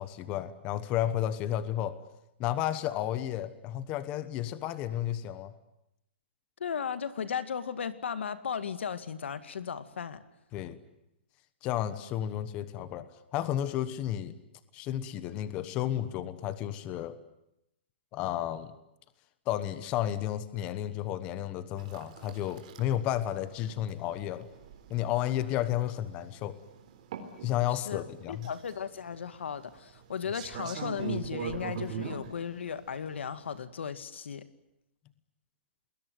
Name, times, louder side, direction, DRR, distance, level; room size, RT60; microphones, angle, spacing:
voice 1, 0.0-2.0 2.4-5.5 10.5-10.8 11.6-14.3 14.7-17.2 18.1-18.7 19.5-24.5 24.9-26.6 27.4-28.5, left 12 dB, 20° left, 13 dB, 1.1 m, -32 dB
voice 2, 6.6-10.2 27.7-34.5, left 7 dB, 90° left, 12 dB, 2.1 m, -36 dB
sound 1, 21.8-33.6, right 8 dB, 35° right, 3.6 m, -42 dB
28.5 x 21.0 x 9.3 m, 0.83 s
hypercardioid pair, 175°, 6 cm